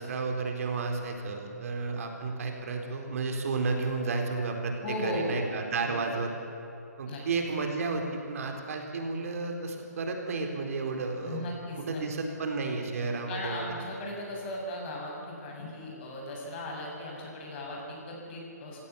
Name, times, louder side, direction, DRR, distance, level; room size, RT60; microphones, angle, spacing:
voice 1, 0.0-6.3 7.0-11.4 11.8-13.7, right 4 dB, 55° right, 3 dB, 4.2 m, -32 dB
voice 2, 4.8-5.5 5.8-6.2 7.1-7.2 11.2-12.0 13.3-18.8, left 1 dB, 40° left, -1 dB, 7.9 m, -37 dB
27.0 x 17.0 x 8.7 m, 2.8 s
hypercardioid pair, 150°, 9 cm